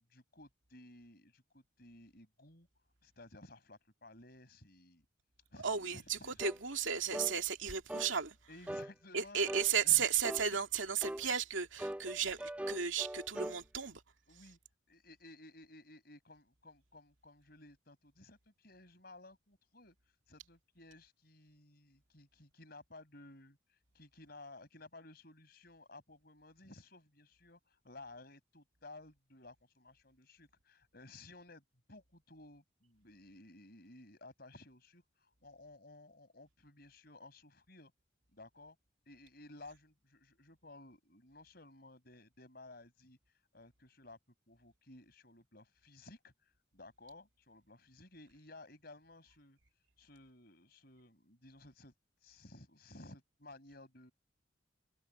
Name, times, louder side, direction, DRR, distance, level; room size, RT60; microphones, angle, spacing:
voice 1, 0.0-2.7 3.0-5.1 5.5-6.4 8.5-9.4 9.8-10.0 12.0-12.1 14.3-14.6 14.9-20.0 20.3-23.6 23.9-37.9 38.3-38.8 39.1-43.2 43.5-44.2 44.5-46.3 46.7-49.6 50.0-51.9 52.2-54.1, left 2 dB, 50° left, 5.5 m, -56 dB
voice 2, 5.6-8.4 9.1-14.0, right 7 dB, 80° right, 2.4 m, -34 dB
sound 1, 6.4-6.6 7.1-7.4 7.9-8.1 8.7-8.9 9.4-9.7 10.2-10.5 11.0-11.2 11.8-13.6, right 1 dB, 5° right, 0.6 m, -40 dB
head